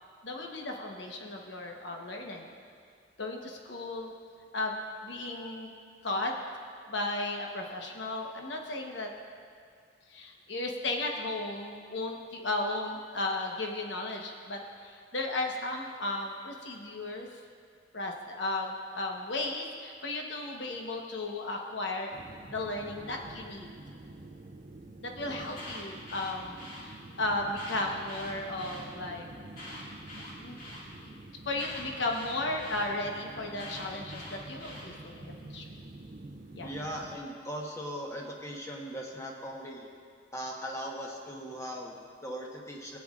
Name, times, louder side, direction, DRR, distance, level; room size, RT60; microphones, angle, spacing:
voice 1, 0.2-2.5 3.2-4.1 4.5-4.7 5.0-5.7 6.0-6.3 6.9-9.1 10.1-17.3 17.9-22.1 22.5-23.7 25.0-29.3 30.4-30.6 31.0-31.1 31.4-35.7 36.5-36.7, left 2 dB, 70° left, 1 dB, 1.1 m, -35 dB
sound 1, 22.1-37.2, right 2 dB, 45° right, 0.6 m, -48 dB
Alarm, 25.4-26.8 27.5-28.8 29.5-30.8 31.6-32.8 33.6-34.9, left 1 dB, 55° left, 2.1 m, -45 dB
voice 2, 36.6-39.9 40.3-43.0, equal, 15° left, -1 dB, 1.1 m, -39 dB
17.0 x 8.6 x 2.5 m, 2.2 s
head